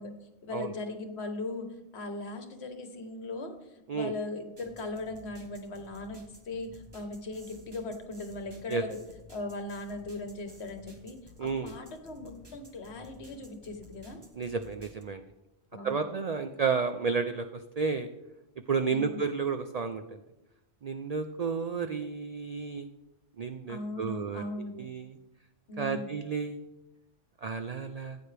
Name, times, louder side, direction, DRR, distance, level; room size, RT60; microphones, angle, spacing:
voice 1, 0.0-9.0 9.3-14.2 15.7-16.2 18.9-19.2 23.7-24.9 25.7-26.1, left 2 dB, 60° left, 6 dB, 1.3 m, -39 dB
sound 1, 4.6-15.0, left 1 dB, 20° right, 1.1 m, -54 dB
voice 2, 11.4-11.7 14.4-15.2 15.8-17.4 17.8-18.1 18.7-20.2 20.8-22.9 23.4-24.4 24.8-25.1 25.8-26.6 27.4-28.2, right 5 dB, 65° right, 7 dB, 0.3 m, -31 dB
14.5 x 8.6 x 3.4 m, 0.98 s
omnidirectional pair, 1.3 m